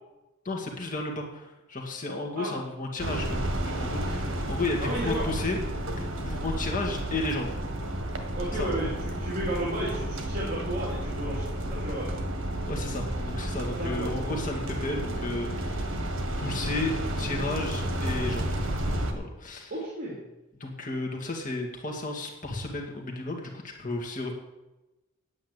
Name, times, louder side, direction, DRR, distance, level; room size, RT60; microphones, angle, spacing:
voice 1, 0.4-5.6 6.0-7.6 8.6-8.8 12.7-16.0 16.4-18.5 19.1-19.7 20.6-24.3, left 2 dB, 40° left, 0 dB, 2.1 m, -33 dB
sound 1, 3.0-19.1, right 1 dB, 65° right, 1.8 m, -31 dB
voice 2, 4.8-5.3 8.4-12.2 13.8-14.2 19.7-20.2, right 1 dB, 40° right, -5 dB, 3.2 m, -33 dB
9.4 x 9.1 x 8.1 m, 1.0 s
head